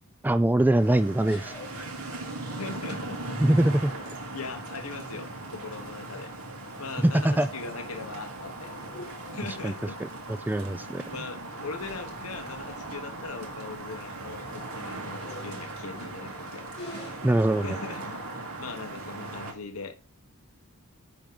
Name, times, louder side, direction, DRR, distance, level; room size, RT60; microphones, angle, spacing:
voice 1, 0.2-1.9 3.4-3.9 7.0-7.5 9.6-9.7 10.5-11.0 17.2-17.8, right 1 dB, 10° right, 0.3 m, -23 dB
sound 1, 0.8-19.5, right 2 dB, 70° right, 2.2 m, -39 dB
sound 2, 1.2-4.6 6.2-6.5 6.9-7.2 7.7-10.2 10.6-10.7 11.0-11.1 12.0-12.1 12.4-12.5 12.9-13.2 13.8-16.0 16.7-17.1, left 1 dB, 25° left, 3.1 m, -48 dB
voice 2, 2.5-3.4 4.3-6.3 6.8-8.7 9.3-10.0 11.1-18.2 18.6-19.9, left 4 dB, 70° left, 1.1 m, -40 dB
Explosion, 11.8-14.7, right 2 dB, 55° right, 2.1 m, -54 dB
10.0 x 3.6 x 6.0 m
head